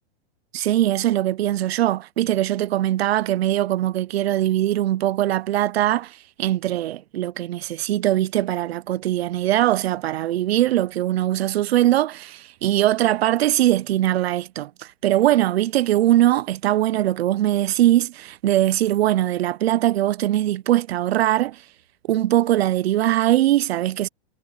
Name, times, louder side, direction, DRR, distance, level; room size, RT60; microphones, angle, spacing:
voice 1, 0.5-21.6 22.1-24.1, right 14 dB, 70° right, 0.8 m, -21 dB
hypercardioid pair, 140°, 33 cm